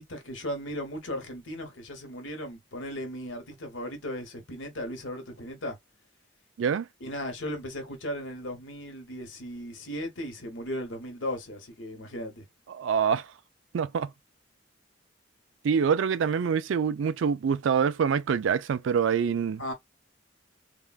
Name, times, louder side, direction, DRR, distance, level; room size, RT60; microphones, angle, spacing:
voice 1, 0.0-5.8 7.0-12.4 19.6-19.7, equal, 85° left, 1.2 m, -36 dB
voice 2, 12.8-13.3 13.7-14.1 15.6-19.7, right 6 dB, 85° right, 0.4 m, -25 dB
3.5 x 2.2 x 2.3 m
head